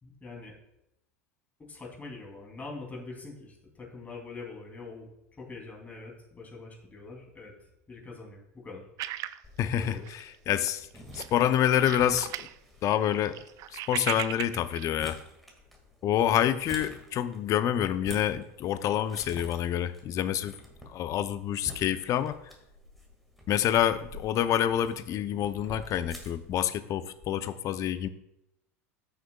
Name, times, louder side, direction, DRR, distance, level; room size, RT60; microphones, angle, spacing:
voice 1, 0.0-0.6 1.7-5.1 5.4-7.5 7.9-8.8 9.8-10.1, left 3 dB, 20° left, 0 dB, 2.9 m, -44 dB
sound 1, 9.0-10.4 10.7-10.9 11.1-12.5 12.9-14.9, right 14 dB, 50° right, 0.4 m, -37 dB
sound 2, 9.4-26.6, left 1 dB, ahead, 1.9 m, -49 dB
voice 2, 9.6-10.9 11.1-12.5 12.8-13.4 13.7-15.2 16.0-20.5 20.9-22.4 23.5-28.1, left 10 dB, 45° left, 13 dB, 0.6 m, -27 dB
14.0 x 6.4 x 2.3 m, 0.84 s
hypercardioid pair, 90°, 8 cm